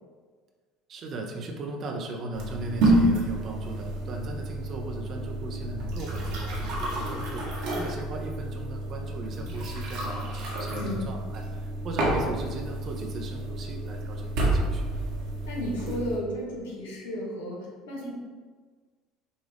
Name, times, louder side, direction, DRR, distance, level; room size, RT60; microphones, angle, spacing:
voice 1, 0.9-14.9, right 2 dB, 50° right, 2 dB, 0.7 m, -38 dB
sound 1, 2.3-16.2, right 1 dB, 70° right, 1.3 m, -29 dB
voice 2, 10.7-11.1 15.5-18.1, equal, 85° left, -3 dB, 1.4 m, -33 dB
6.3 x 2.4 x 3.5 m, 1.5 s
hypercardioid pair, 80°, 0 cm